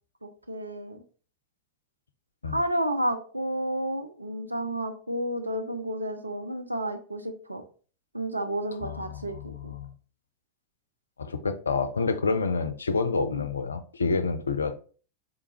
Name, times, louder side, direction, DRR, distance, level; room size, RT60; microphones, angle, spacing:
voice 1, 0.2-1.0 2.4-7.6 8.1-9.7 13.2-13.5, right 1 dB, 85° right, 6 dB, 0.5 m, -31 dB
voice 2, 8.8-9.9 11.2-14.7, left 4 dB, 75° left, 11 dB, 0.4 m, -28 dB
3.8 x 3.5 x 2.9 m, 0.40 s
figure-of-eight pair, 90°, 0 cm